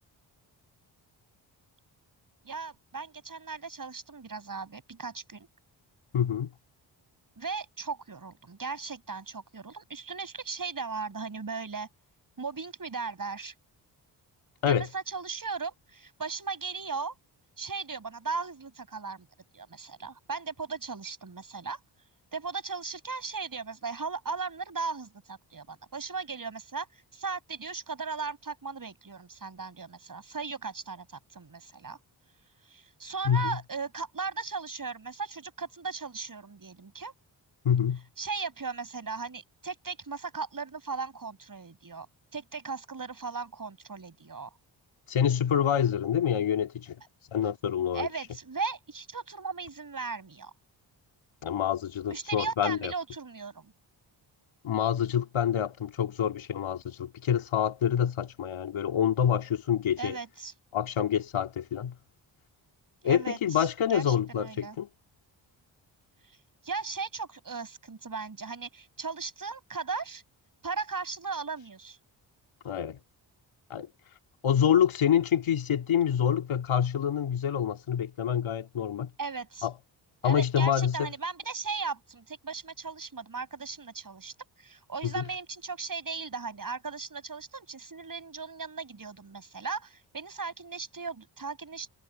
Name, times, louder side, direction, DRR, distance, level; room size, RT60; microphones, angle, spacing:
voice 1, 2.4-5.5 7.4-11.9 12.4-13.5 14.6-17.1 17.6-19.3 19.5-21.8 22.3-32.0 32.7-37.1 38.2-42.1 42.3-44.5 47.9-50.5 52.1-53.7 60.0-60.5 63.0-64.8 66.2-66.4 66.6-70.2 70.6-72.0 79.2-79.7 80.2-91.9, right 4 dB, 45° right, 6.9 m, -37 dB
voice 2, 6.1-6.5 14.6-14.9 33.2-33.6 37.6-38.0 45.1-47.0 47.3-48.1 51.4-52.9 54.6-60.2 60.7-62.0 63.0-64.9 72.6-73.0 73.7-73.9 74.4-79.1 79.6-79.7 80.2-81.1 85.0-85.2, left 9 dB, 80° left, 2.8 m, -27 dB
cardioid pair, 55°, 47 cm